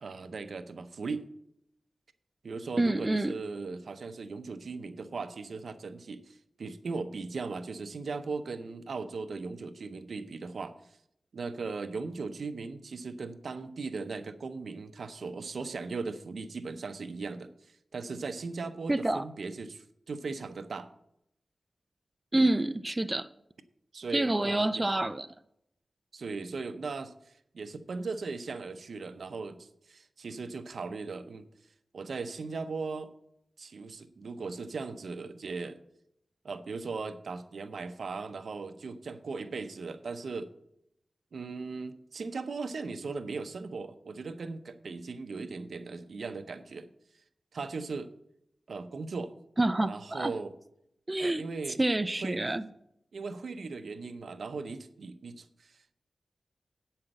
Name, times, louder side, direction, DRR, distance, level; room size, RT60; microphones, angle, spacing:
voice 1, 0.0-1.3 2.4-11.0 11.3-20.9 23.9-24.9 26.1-31.4 31.9-33.1 33.6-35.8 36.4-40.5 41.3-46.9 47.5-48.1 48.7-49.3 49.9-50.5 51.2-51.8 52.2-52.5 53.1-55.9, right 4 dB, 75° right, 10 dB, 0.7 m, -38 dB
voice 2, 2.8-3.3 18.9-19.2 22.3-23.3 24.1-25.3 49.6-50.3 51.1-51.4 51.8-52.6, right 1 dB, 20° right, 11 dB, 0.5 m, -27 dB
8.8 x 5.7 x 7.9 m, 0.77 s
wide cardioid pair, 75°, 0 cm